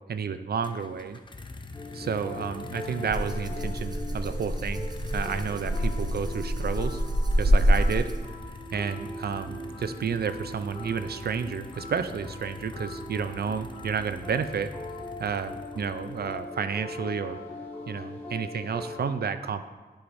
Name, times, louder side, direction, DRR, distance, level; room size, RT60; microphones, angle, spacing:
voice 1, 0.1-1.2 1.9-4.9 5.1-7.0 7.4-8.1 8.7-14.7 15.2-17.4 17.9-19.6, right 6 dB, 70° right, 10 dB, 0.4 m, -31 dB
sound 1, 0.6-16.6, left 3 dB, 30° left, 0.5 m, -44 dB
sound 2, 1.7-19.1, left 1 dB, 10° left, 2.1 m, -41 dB
Rattle (instrument), 3.1-8.4, equal, 25° right, 0.6 m, -26 dB
10.0 x 4.8 x 2.6 m, 1.4 s
wide cardioid pair, 90°, 17 cm